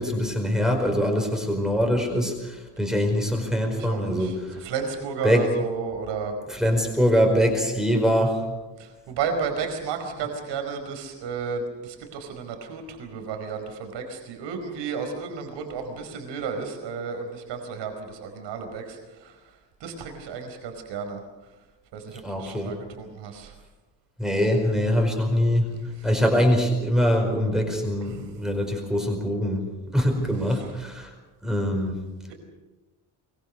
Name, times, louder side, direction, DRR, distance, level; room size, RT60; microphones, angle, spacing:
voice 1, 0.0-4.6 5.2-5.5 6.5-8.4 22.2-22.7 24.2-25.6 26.0-29.7 29.9-31.1 31.4-32.0, equal, ahead, 2 dB, 4.8 m, -23 dB
voice 2, 3.7-4.3 4.6-6.3 8.8-19.3 19.8-21.2 21.9-23.5 26.0-26.1 28.1-28.2 30.5-30.6, right 5 dB, 75° right, 5 dB, 4.9 m, -33 dB
23.5 x 23.0 x 6.6 m, 1.1 s
cardioid pair, 175°, 44 cm